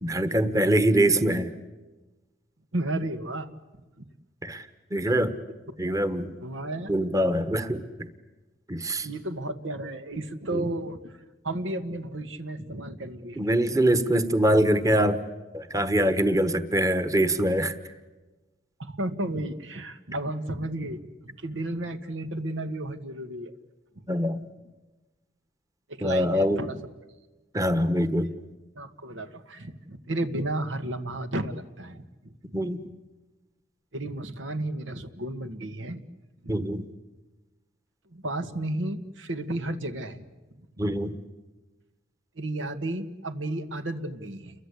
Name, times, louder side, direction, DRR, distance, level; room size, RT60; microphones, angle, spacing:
voice 1, 0.0-1.5 4.4-5.4 5.8-6.4 6.9-7.8 8.7-9.1 10.5-10.7 13.4-15.2 15.5-17.8 24.1-24.4 26.0-26.7 27.5-28.4 32.5-32.8 36.5-36.9 40.8-41.2, right 1 dB, 20° right, 11 dB, 1.2 m, -24 dB
voice 2, 2.7-3.5 4.0-4.1 5.8-6.0 6.4-6.9 7.4-7.6 9.0-11.1 11.4-13.4 18.8-23.5 25.9-26.8 28.8-32.0 33.9-36.0 36.4-36.5 38.1-40.3 40.8-40.9 42.4-44.5, right 1 dB, 90° right, 8 dB, 1.8 m, -33 dB
29.5 x 23.0 x 8.3 m, 1.1 s
head